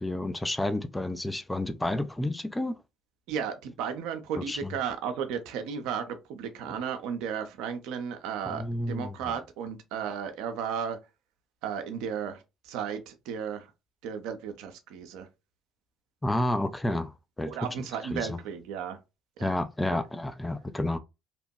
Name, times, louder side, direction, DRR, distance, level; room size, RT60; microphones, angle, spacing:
voice 1, 0.0-2.8 4.4-4.8 8.5-9.3 16.2-17.5 18.1-18.4 19.4-21.0, left 1 dB, 10° left, 0.3 m, -30 dB
voice 2, 3.3-11.0 11.6-12.4 12.7-13.6 14.0-15.3 17.5-19.0 19.4-19.5, right 7 dB, 70° right, 0.5 m, -34 dB
2.9 x 2.1 x 2.7 m
hypercardioid pair, 60°, 0 cm